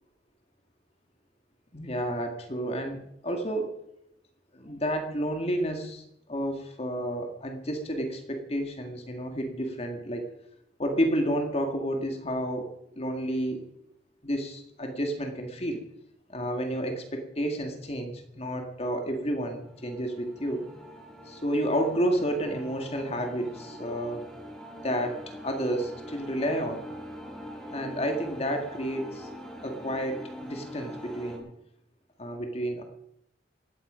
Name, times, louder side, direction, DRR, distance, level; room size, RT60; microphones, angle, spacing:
voice 1, 1.7-3.0 3.2-3.8 4.5-10.3 10.8-13.7 14.2-15.9 16.3-20.7 21.3-24.3 24.8-26.8 27.7-29.3 29.6-31.5 32.2-32.8, equal, 35° left, 4 dB, 2.1 m, -30 dB
sound 1, 19.5-31.4, equal, 5° left, 4.3 m, -43 dB
17.5 x 14.5 x 5.1 m, 0.80 s
head